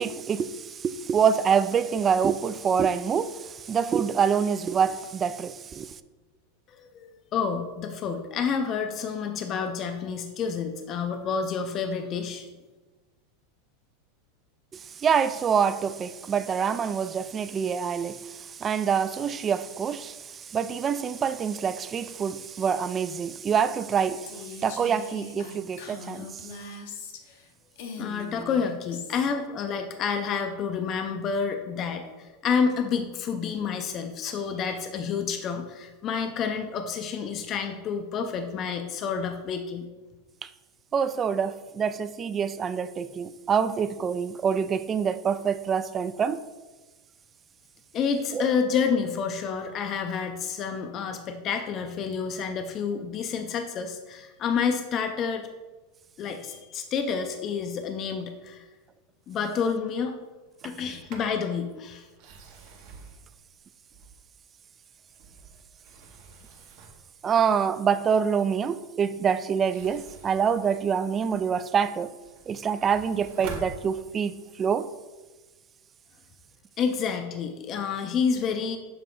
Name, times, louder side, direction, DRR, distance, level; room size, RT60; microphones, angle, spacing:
voice 1, 0.0-5.9 14.7-26.4 40.4-40.5 40.9-46.4 48.3-48.5 67.2-72.1 72.5-74.9, right 7 dB, 25° right, 0.3 m, -26 dB
voice 2, 6.7-12.5 28.0-39.9 47.9-55.5 56.2-58.7 59.3-60.2 60.6-62.1 76.8-78.8, left 6 dB, 40° left, 0.5 m, -29 dB
Female speech woman speaking, 24.3-27.4 27.8-29.3, left 4 dB, 70° left, 0.9 m, -41 dB
Sliding door, 60.6-61.4 62.1-64.4 65.0-67.1 69.5-71.4 71.9-74.4, right 4 dB, 60° right, 1.2 m, -46 dB
6.9 x 4.1 x 3.8 m
supercardioid pair, 125°, 0 cm